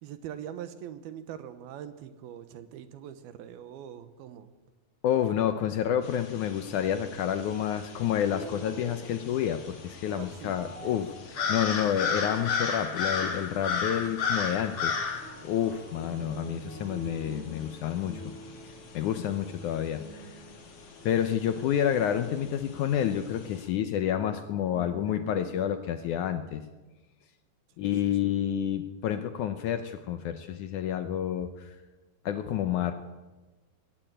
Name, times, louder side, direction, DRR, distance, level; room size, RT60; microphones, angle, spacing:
voice 1, 0.0-4.5 10.1-11.0 27.8-28.2, right 10 dB, 85° right, 11 dB, 3.0 m, -43 dB
voice 2, 5.0-11.1 11.5-15.0 15.4-18.2 18.9-20.0 21.1-26.6 27.8-31.7 32.3-32.9, left 10 dB, 75° left, 9 dB, 1.9 m, -29 dB
sound 1, 6.0-23.7, left 5 dB, 55° left, 3.8 m, -36 dB
sound 2, 8.3-22.9 24.2-25.4, equal, 35° right, 8.0 m, -47 dB
20.5 x 16.0 x 8.9 m, 1.2 s
omnidirectional pair, 4.3 m